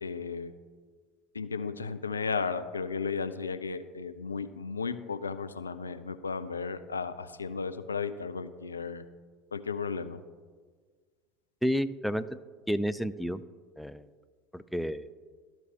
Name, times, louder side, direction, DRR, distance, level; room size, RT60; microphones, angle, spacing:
voice 1, 0.0-0.5 1.3-9.0 9.5-10.2, left 5 dB, 80° left, 11 dB, 0.3 m, -34 dB
voice 2, 11.6-12.4 12.7-13.4 13.8-14.1 14.5-15.1, equal, ahead, 12 dB, 0.3 m, -30 dB
13.0 x 4.4 x 2.8 m, 1.5 s
figure-of-eight pair, 70°, 0 cm